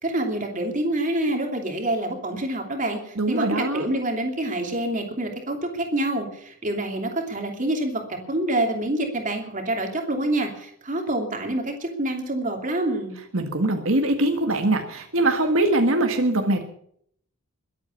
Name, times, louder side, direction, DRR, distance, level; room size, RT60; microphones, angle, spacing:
voice 1, 0.0-13.2, right 1 dB, 35° right, 3 dB, 2.8 m, -27 dB
voice 2, 3.2-3.9 13.3-16.6, right 2 dB, 70° right, 4 dB, 1.8 m, -22 dB
22.0 x 8.7 x 7.1 m, 0.67 s
head